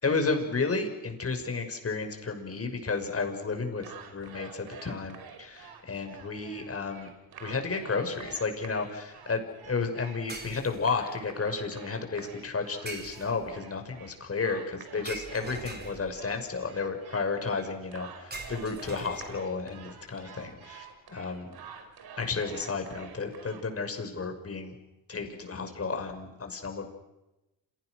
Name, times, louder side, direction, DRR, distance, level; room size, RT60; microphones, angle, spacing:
voice 1, 0.0-7.1 7.4-21.5 22.2-24.7 25.1-26.9, left 4 dB, 30° left, 5 dB, 6.3 m, -32 dB
sound 1, 3.7-23.6, right 6 dB, 55° right, 4.4 m, -49 dB
Bottles Breaking, 8.2-8.4 10.3-11.1 12.9-13.6 15.1-16.3 18.3-19.6, right 2 dB, 20° right, 4.4 m, -43 dB
30.0 x 27.5 x 6.5 m, 0.98 s
cardioid pair, 90°, 44 cm